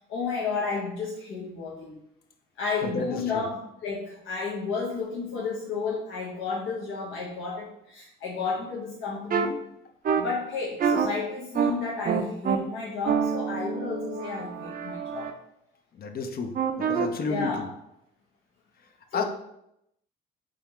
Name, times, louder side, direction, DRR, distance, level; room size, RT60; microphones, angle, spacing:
voice 1, 0.1-2.0 2.6-9.6 10.2-15.4 16.8-17.7 19.1-19.2, left 4 dB, 75° left, -5 dB, 0.9 m, -32 dB
voice 2, 2.8-3.4 16.0-17.7 19.1-19.2, left 3 dB, 50° left, 6 dB, 0.6 m, -31 dB
sound 1, 9.3-9.5 10.0-10.2 10.8-11.1 11.5-11.7 12.0-12.6 13.0-15.3 16.5-17.1, right 7 dB, 45° right, 0.5 m, -26 dB
3.6 x 2.4 x 4.3 m, 0.79 s
cardioid pair, 90°, 20 cm